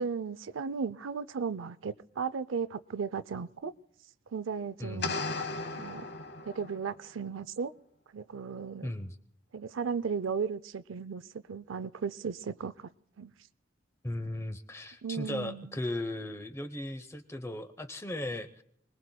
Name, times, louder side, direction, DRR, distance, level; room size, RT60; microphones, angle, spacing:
voice 1, 0.0-3.7 4.3-5.1 5.8-6.1 6.4-7.7 8.1-8.9 9.5-11.2 11.5-12.9 13.2-13.3 15.0-15.8, right 6 dB, 90° right, 0.5 m, -35 dB
voice 2, 4.8-5.1 8.8-9.2 14.0-18.6, left 1 dB, 15° left, 0.7 m, -37 dB
sound 1, 5.0-6.9, left 3 dB, 55° left, 0.9 m, -36 dB
29.0 x 20.5 x 2.2 m
head